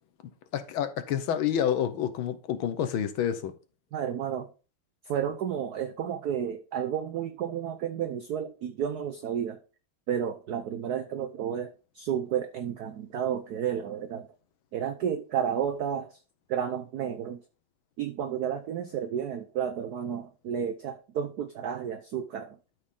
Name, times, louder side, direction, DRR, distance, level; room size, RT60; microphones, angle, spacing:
voice 1, 0.5-3.5, left 9 dB, 70° left, 1.5 m, -28 dB
voice 2, 3.9-4.5 5.1-9.6 10.1-14.3 14.7-16.2 16.5-17.4 18.0-22.6, right 8 dB, 75° right, 0.8 m, -31 dB
12.5 x 4.2 x 3.7 m
omnidirectional pair, 2.4 m